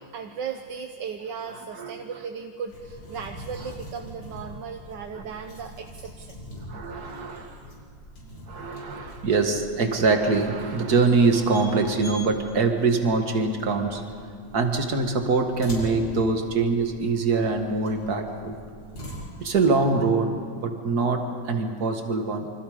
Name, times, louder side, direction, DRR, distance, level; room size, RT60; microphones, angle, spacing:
voice 1, 0.1-6.4 8.2-8.8, right 6 dB, 70° right, 5 dB, 1.6 m, -37 dB
sound 1, 2.7-20.1, equal, 90° left, 5.6 m, -43 dB
voice 2, 6.7-7.6 8.5-14.0 14.5-18.5 19.4-22.5, right 4 dB, 55° right, 5 dB, 2.3 m, -24 dB
27.5 x 25.5 x 5.1 m, 2.2 s
omnidirectional pair, 2.0 m